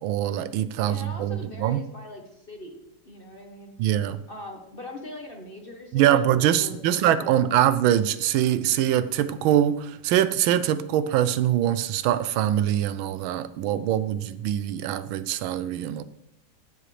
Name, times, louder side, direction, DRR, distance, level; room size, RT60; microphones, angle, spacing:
voice 1, 0.0-1.8 3.8-4.2 5.9-16.0, right 11 dB, 80° right, 14 dB, 1.4 m, -23 dB
voice 2, 0.9-2.8 3.0-3.7 4.3-6.3 6.6-7.6, left 1 dB, 35° left, 2 dB, 1.1 m, -41 dB
16.0 x 7.6 x 3.3 m, 0.81 s
omnidirectional pair, 2.2 m